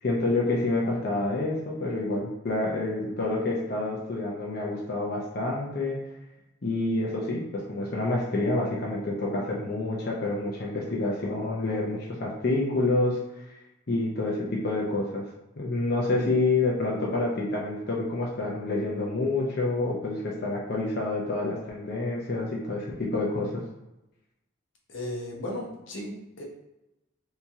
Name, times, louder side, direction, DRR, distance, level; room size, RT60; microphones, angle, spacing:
voice 1, 0.0-6.0 6.6-13.2 13.5-13.6 13.9-15.2 15.6-23.5, left 2 dB, 55° left, -4 dB, 0.6 m, -28 dB
voice 2, 24.9-26.4, left 1 dB, 80° left, -1 dB, 0.9 m, -35 dB
2.9 x 2.8 x 3.5 m, 0.95 s
head